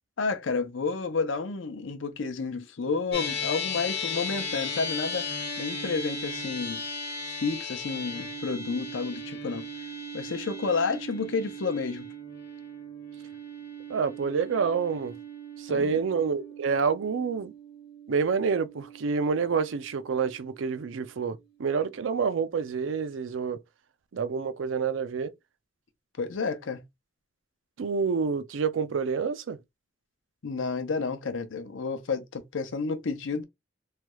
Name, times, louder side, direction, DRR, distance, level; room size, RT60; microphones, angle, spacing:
voice 1, 0.2-5.3 5.6-6.8 7.4-9.7 10.1-12.1 15.7-16.0 26.2-26.8 30.4-33.4, left 4 dB, 85° left, 0.6 m, -30 dB
sound 1, 3.1-21.7, left 2 dB, 55° left, 1.3 m, -37 dB
voice 2, 13.9-15.2 15.6-17.5 18.1-23.6 24.1-25.3 27.8-29.6, right 5 dB, 90° right, 0.4 m, -28 dB
3.2 x 2.2 x 3.0 m
head